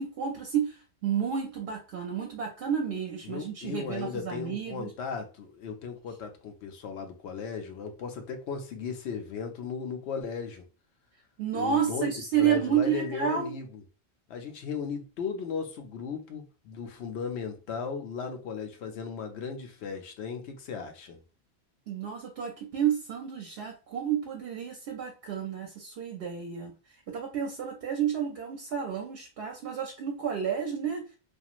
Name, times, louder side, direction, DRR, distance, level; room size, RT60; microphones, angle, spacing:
voice 1, 0.0-4.9 11.4-13.5 21.9-26.7 27.1-31.1, right 8 dB, 70° right, 0.8 m, -30 dB
voice 2, 3.2-10.6 11.5-12.1 12.4-13.8 14.3-21.2, left 5 dB, 85° left, 0.9 m, -36 dB
2.9 x 2.4 x 2.4 m
omnidirectional pair, 1.1 m